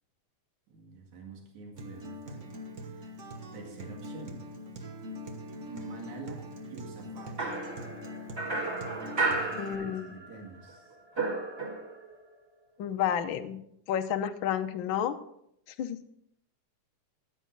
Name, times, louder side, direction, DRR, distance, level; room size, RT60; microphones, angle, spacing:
voice 1, 0.7-2.5 2.8-3.2 3.5-4.5 5.7-7.4 9.2-11.0, right 3 dB, 80° right, 0 dB, 3.5 m, -46 dB
Acoustic guitar, 1.8-9.7, equal, 55° right, 0.8 m, -43 dB
sound 1, 7.4-10.4 10.7-12.1, right 3 dB, 25° right, 1.8 m, -33 dB
voice 2, 9.5-10.2 12.8-13.6 13.9-15.2 15.8-16.0, left 9 dB, 70° left, 6 dB, 1.2 m, -30 dB
15.0 x 10.0 x 4.0 m, 0.73 s
omnidirectional pair, 3.3 m